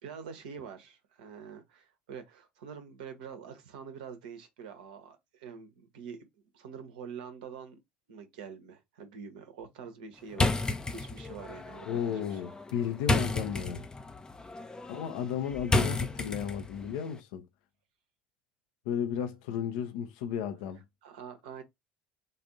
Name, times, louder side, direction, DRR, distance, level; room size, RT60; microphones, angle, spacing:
voice 1, 0.0-6.2 6.5-7.8 8.1-10.6 10.9-12.4 21.0-21.6, right 6 dB, 65° right, 0.9 m, -45 dB
sound 1, 10.3-16.8, left 2 dB, 15° left, 0.6 m, -32 dB
voice 2, 11.9-13.9 14.9-17.5 18.8-20.8, left 8 dB, 60° left, 0.6 m, -34 dB
3.9 x 2.6 x 3.8 m
figure-of-eight pair, 65°, 5 cm